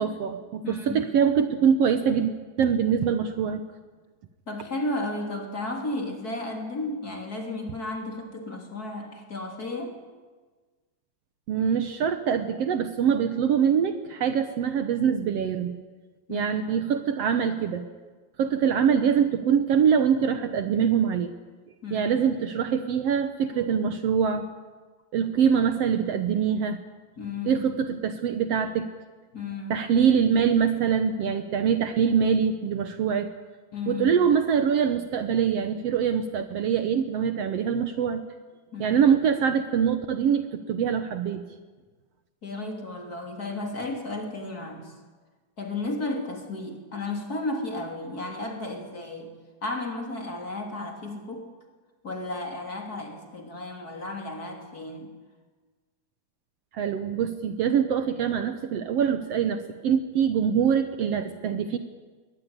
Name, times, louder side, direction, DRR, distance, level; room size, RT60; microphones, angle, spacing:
voice 1, 0.0-2.3 2.6-3.6 11.5-15.8 16.3-17.8 18.4-21.3 21.9-24.5 25.1-26.8 27.5-28.9 29.7-33.3 33.9-38.2 38.8-41.4 56.7-61.8, right 7 dB, 65° right, 9 dB, 1.9 m, -24 dB
voice 2, 0.6-1.0 4.5-10.0 16.3-16.8 21.8-22.2 27.2-27.6 29.3-29.9 33.7-34.1 38.7-39.0 42.4-44.9 45.6-49.3 49.6-51.5 52.0-55.1, left 2 dB, 30° left, 2 dB, 3.5 m, -33 dB
22.0 x 19.0 x 9.8 m, 1.4 s
omnidirectional pair, 3.4 m